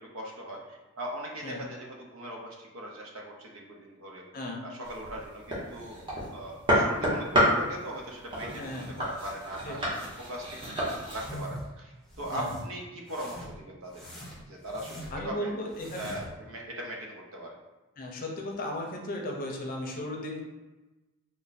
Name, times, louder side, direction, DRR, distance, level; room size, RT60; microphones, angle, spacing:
voice 1, 0.0-4.2 4.6-5.9 6.3-8.6 9.0-9.9 10.3-14.1 14.5-15.5 16.0-17.5, right 1 dB, 80° right, -1 dB, 0.7 m, -40 dB
voice 2, 4.3-4.6 8.6-8.9 9.6-9.8 12.3-12.5 15.1-16.1 18.0-20.4, left 1 dB, 40° left, 0 dB, 0.6 m, -35 dB
sound 1, 4.8-11.3, equal, 25° right, 1.0 m, -30 dB
sound 2, 11.1-11.7 12.1-12.6 13.1-13.6 13.9-15.3 15.7-16.4, equal, ahead, 0.7 m, -42 dB
3.2 x 2.2 x 4.0 m, 1.1 s
head